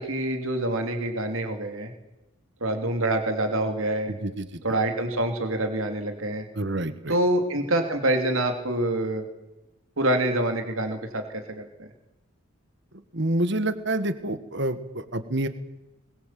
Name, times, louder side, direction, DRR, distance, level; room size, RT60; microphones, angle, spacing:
voice 1, 0.0-1.9 2.6-4.1 4.6-6.4 7.1-9.2 10.0-11.2 11.5-11.9, right 1 dB, 80° right, 5 dB, 3.1 m, -26 dB
voice 2, 4.1-4.6 6.6-7.2 13.1-15.5, right 1 dB, 55° right, 11 dB, 1.6 m, -28 dB
22.0 x 21.5 x 7.7 m, 0.96 s
head